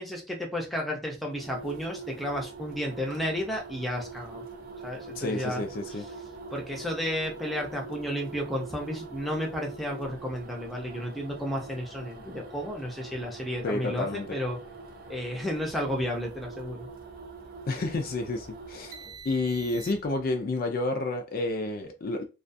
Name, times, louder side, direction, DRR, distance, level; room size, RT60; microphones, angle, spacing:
voice 1, 0.0-4.5 4.8-5.6 6.5-14.6 15.1-16.9, equal, ahead, 0.6 m, -32 dB
sound 1, 1.3-20.3, right 4 dB, 50° right, 0.5 m, -44 dB
voice 2, 5.2-6.0 13.6-14.3 17.7-19.0 19.2-22.2, left 2 dB, 50° left, 0.4 m, -30 dB
2.3 x 2.2 x 2.5 m
head